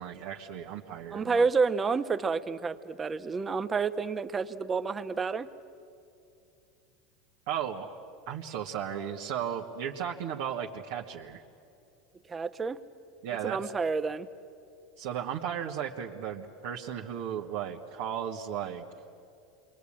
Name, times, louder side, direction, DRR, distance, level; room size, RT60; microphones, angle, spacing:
voice 1, 0.0-1.5 7.5-7.9 8.3-11.4 13.2-13.7 15.0-18.8, right 9 dB, 70° right, -2 dB, 1.6 m, -35 dB
voice 2, 1.1-5.5 12.3-12.8 13.4-14.3, right 4 dB, 25° right, 10 dB, 1.1 m, -29 dB
28.0 x 22.5 x 8.8 m, 2.5 s
hypercardioid pair, 90°, 0 cm